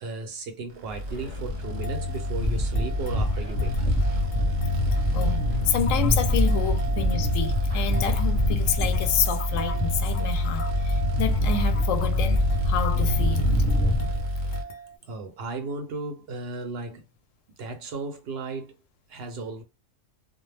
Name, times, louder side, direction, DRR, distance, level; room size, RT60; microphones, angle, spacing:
voice 1, 0.0-4.0 15.0-17.0 17.6-18.7 19.1-19.6, right 3 dB, 60° right, 0.8 m, -35 dB
sound 1, 0.8-14.6, left 1 dB, 85° right, 1.0 m, -27 dB
sound 2, 1.1-14.2, equal, 25° left, 0.7 m, -28 dB
sound 3, 1.6-15.0, right 4 dB, 60° left, 0.7 m, -41 dB
voice 2, 5.1-13.6, left 7 dB, 90° left, 1.0 m, -29 dB
2.2 x 2.0 x 3.2 m
omnidirectional pair, 1.3 m